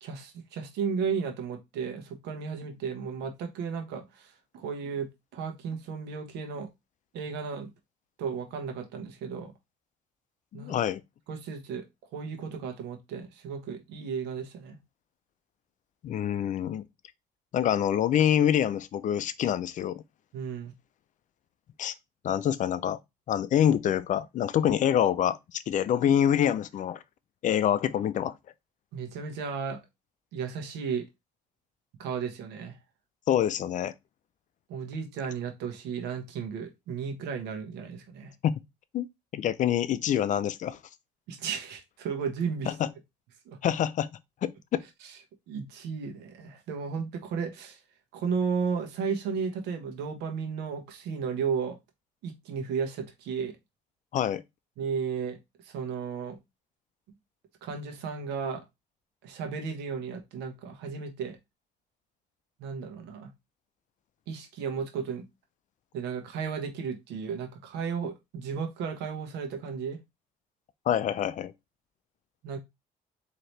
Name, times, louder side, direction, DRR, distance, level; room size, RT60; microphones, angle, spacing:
voice 1, 0.0-6.7 7.1-7.7 8.2-9.5 10.5-10.8 11.3-11.9 12.1-14.8 20.3-20.7 28.9-29.8 30.3-31.1 32.0-32.8 34.7-38.3 41.3-42.7 43.4-43.6 45.0-45.2 45.5-47.8 48.1-51.8 52.2-53.6 54.8-55.4 55.6-56.4 57.6-58.6 59.2-61.4 62.6-63.3 64.3-65.3 65.9-70.0 72.4-72.6, right 6 dB, 85° right, 1.0 m, -34 dB
voice 2, 10.5-11.0 16.0-16.9 17.5-20.0 21.8-21.9 22.2-23.0 23.3-27.0 27.4-28.3 33.3-33.9 38.4-38.6 38.9-39.1 39.3-40.8 42.7-42.9 43.6-44.1 44.4-44.8 54.1-54.4 70.9-71.5, left 10 dB, 50° left, 0.4 m, -26 dB
4.2 x 2.9 x 3.2 m
cardioid pair, 110°, 17 cm